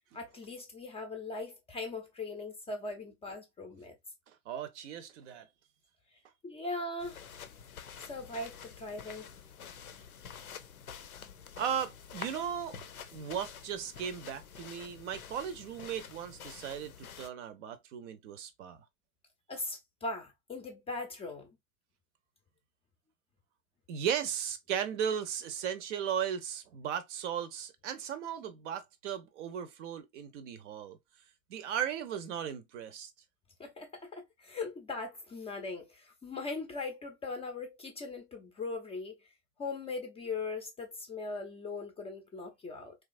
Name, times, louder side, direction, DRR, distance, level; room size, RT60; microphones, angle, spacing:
voice 1, 0.1-4.0 6.4-7.3 8.0-9.3 19.5-21.5 33.6-39.3 39.6-43.0, left 3 dB, 15° left, 0.4 m, -40 dB
voice 2, 4.5-5.5 11.6-12.8 13.1-18.8 23.9-31.0 31.5-33.1, right 8 dB, 55° right, 0.6 m, -36 dB
sound 1, 7.0-17.3, left 7 dB, 85° left, 0.6 m, -48 dB
3.0 x 2.4 x 2.4 m
figure-of-eight pair, 85°, 42 cm